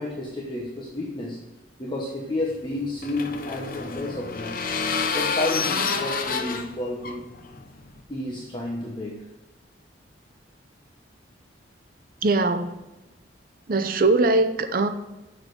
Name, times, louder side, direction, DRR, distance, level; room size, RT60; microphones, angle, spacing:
voice 1, 0.0-1.4 1.8-4.6 5.1-7.3 8.1-9.3, left 2 dB, 25° left, -2 dB, 1.1 m, -31 dB
sound 1, 2.5-8.0, left 5 dB, 50° left, 0.8 m, -29 dB
voice 2, 12.2-12.8 13.7-14.9, right 3 dB, 50° right, 9 dB, 0.6 m, -21 dB
7.4 x 6.5 x 8.0 m, 1.0 s
head